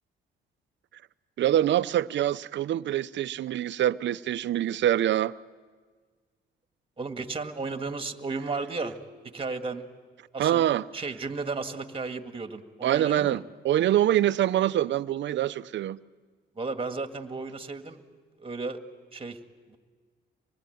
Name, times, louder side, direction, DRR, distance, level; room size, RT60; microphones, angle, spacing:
voice 1, 1.4-5.3 10.4-10.8 12.8-16.0, right 12 dB, 65° right, 0.7 m, -25 dB
voice 2, 7.0-9.0 9.3-9.8 10.3-10.6 10.9-13.4 16.6-18.0 18.4-18.8 19.1-19.4 19.7-19.8, right 3 dB, 25° right, 1.9 m, -34 dB
25.5 x 20.5 x 9.4 m
cardioid pair, 90°, 20 cm